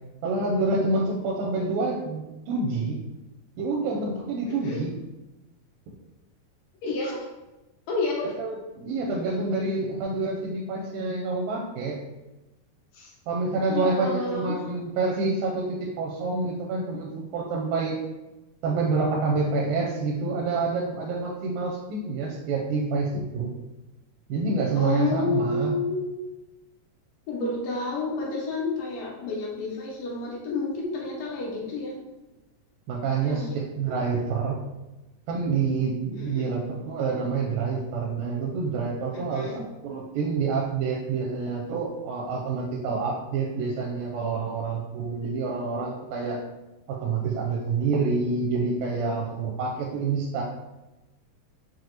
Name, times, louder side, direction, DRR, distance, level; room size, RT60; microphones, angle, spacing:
voice 1, 0.2-3.0 3.6-4.9 5.9-6.0 8.4-12.0 13.3-18.0 18.6-23.5 24.3-25.7 32.9-34.6 35.3-46.4 46.9-50.4, right 4 dB, 85° right, -2 dB, 2.3 m, -27 dB
voice 2, 4.4-4.8 6.8-7.3 7.9-8.3 12.9-13.1 13.7-14.7 24.8-26.1 27.3-32.0 33.2-33.6 36.1-36.5 39.1-39.6, left 3 dB, 80° left, -3 dB, 2.3 m, -30 dB
6.3 x 2.1 x 2.8 m, 1.0 s
omnidirectional pair, 4.0 m